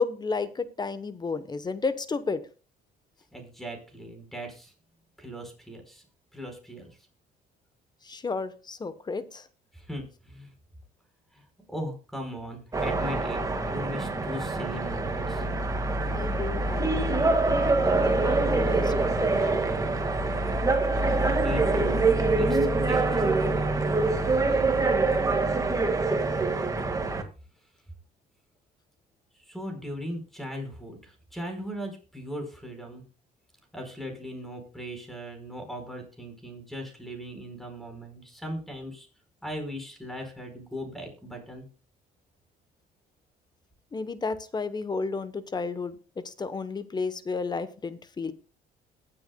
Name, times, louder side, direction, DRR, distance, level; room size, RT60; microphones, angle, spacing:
voice 1, 0.0-2.5 8.0-9.5 16.1-17.3 17.8-19.6 43.9-48.3, left 4 dB, 25° left, 13 dB, 1.0 m, -32 dB
voice 2, 3.3-4.7 5.2-6.0 6.3-7.0 9.7-10.5 11.3-15.4 21.0-22.1 22.4-23.7 29.3-33.0 33.7-39.1 39.4-41.6, equal, ahead, 4 dB, 4.8 m, -38 dB
sound 1, 12.7-27.2, right 3 dB, 20° right, 1.8 m, -25 dB
22.0 x 7.9 x 2.3 m, 0.34 s
cardioid pair, 110°, 17 cm